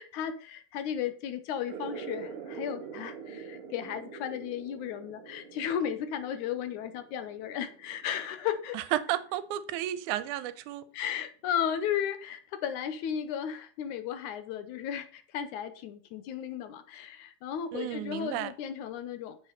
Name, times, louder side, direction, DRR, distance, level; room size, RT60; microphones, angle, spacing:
voice 1, 0.0-8.8 10.9-19.4, left 9 dB, 80° left, 2.3 m, -34 dB
sound 1, 1.7-8.8, right 6 dB, 65° right, 1.4 m, -44 dB
voice 2, 8.9-10.9 17.7-18.5, right 13 dB, 85° right, 2.1 m, -32 dB
9.4 x 7.6 x 4.0 m
omnidirectional pair, 3.5 m